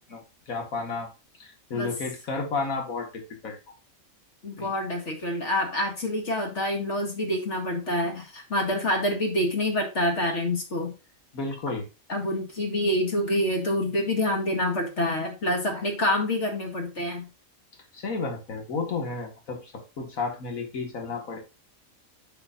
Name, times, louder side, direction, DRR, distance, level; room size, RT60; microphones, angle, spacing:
voice 1, 0.1-1.1 1.4-3.7 4.6-4.7 11.3-11.8 17.9-21.4, left 4 dB, 85° left, 3 dB, 2.0 m, -32 dB
voice 2, 4.4-10.9 12.1-17.3, left 1 dB, 60° left, 2 dB, 2.2 m, -27 dB
9.8 x 5.0 x 2.5 m, 0.29 s
omnidirectional pair, 1.4 m